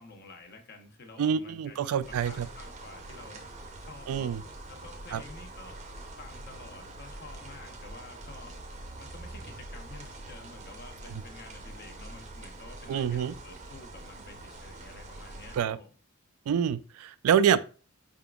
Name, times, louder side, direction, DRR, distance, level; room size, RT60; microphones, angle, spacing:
voice 1, 0.0-3.4 3.8-4.4 4.7-5.8 6.2-8.6 9.0-15.9, left 3 dB, 50° left, 0.7 m, -50 dB
voice 2, 1.2-2.5 4.1-4.4 5.1-5.2 12.9-13.3 15.6-15.8 16.5-17.6, right 8 dB, 85° right, 0.3 m, -26 dB
sound 1, 2.0-15.6, right 2 dB, 35° right, 0.5 m, -45 dB
4.8 x 3.6 x 2.2 m
head